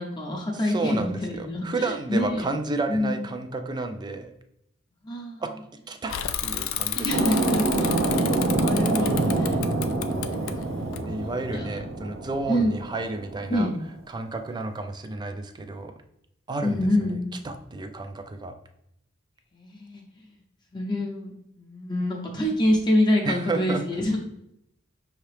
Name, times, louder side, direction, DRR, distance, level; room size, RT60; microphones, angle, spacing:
voice 1, 0.0-2.5 2.9-3.3 5.0-5.4 7.0-10.4 11.1-11.8 12.5-12.8 13.5-13.8 16.6-17.4 19.5-20.0 20.7-24.2, left 1 dB, 20° left, -1 dB, 0.6 m, -27 dB
voice 2, 0.7-4.3 5.4-5.5 5.9-7.1 11.0-13.7 14.1-15.9 16.5-16.8 17.4-18.5 23.2-23.8, right 3 dB, 20° right, 7 dB, 0.4 m, -31 dB
Bicycle / Mechanisms, 6.1-11.6, left 10 dB, 80° left, 0.3 m, -32 dB
sound 1, 7.1-13.5, right 2 dB, 85° right, 0.7 m, -26 dB
5.6 x 2.9 x 3.2 m, 0.78 s
head